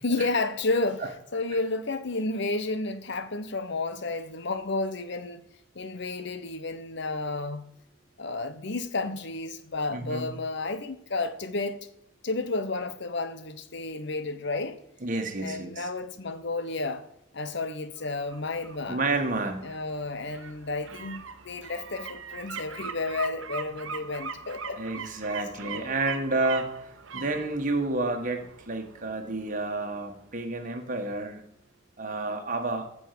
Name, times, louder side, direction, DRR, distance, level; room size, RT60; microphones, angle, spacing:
voice 1, 0.0-5.4 5.7-7.6 8.2-11.8 12.2-14.8 15.4-17.0 17.3-19.0 19.6-25.1 25.6-26.0, left 3 dB, 60° left, 1.0 m, -31 dB
voice 2, 9.9-10.3 15.0-15.9 18.9-19.7 21.0-21.1 24.8-26.8 27.1-31.4 32.0-32.9, right 2 dB, 40° right, 1.6 m, -30 dB
sound 1, 18.0-30.8 31.2-31.3, right 6 dB, 75° right, 1.0 m, -42 dB
14.0 x 5.5 x 6.8 m
head